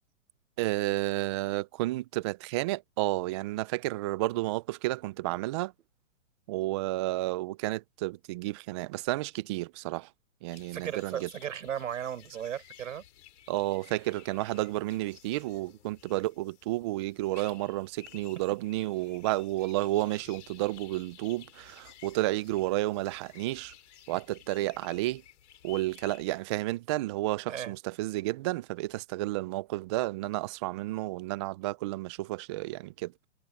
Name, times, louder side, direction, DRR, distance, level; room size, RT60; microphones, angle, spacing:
voice 1, 0.6-5.7 6.5-10.1 10.4-11.3 13.5-23.7 24.1-25.2 25.6-33.1, right 18 dB, 25° right, 0.4 m, -31 dB
sound 1, 10.5-26.4, left 12 dB, 65° left, 6.3 m, -55 dB
voice 2, 10.7-13.0 17.4-17.5 27.5-27.8, right 9 dB, 75° right, 5.8 m, -36 dB
hypercardioid pair, 135°, 39 cm